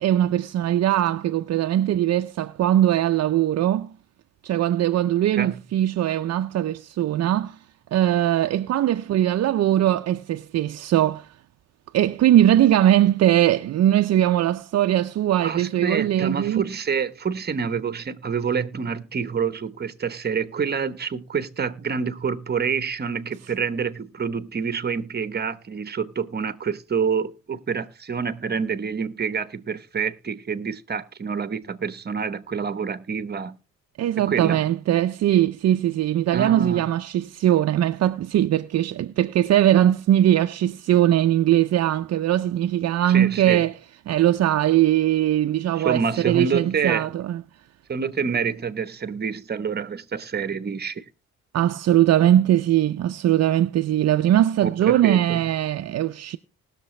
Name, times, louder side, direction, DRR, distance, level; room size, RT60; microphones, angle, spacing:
voice 1, 0.0-3.9 4.4-7.6 7.9-11.3 11.9-16.7 34.0-43.7 44.1-46.0 46.3-47.4 51.5-56.4, right 12 dB, 60° right, 0.5 m, -20 dB
voice 2, 15.4-33.6 34.2-34.7 36.3-36.9 43.0-43.7 45.8-47.1 47.9-51.1 54.6-55.4, right 6 dB, 35° right, 1.0 m, -27 dB
19.5 x 6.8 x 3.2 m
cardioid pair, 90°, 30 cm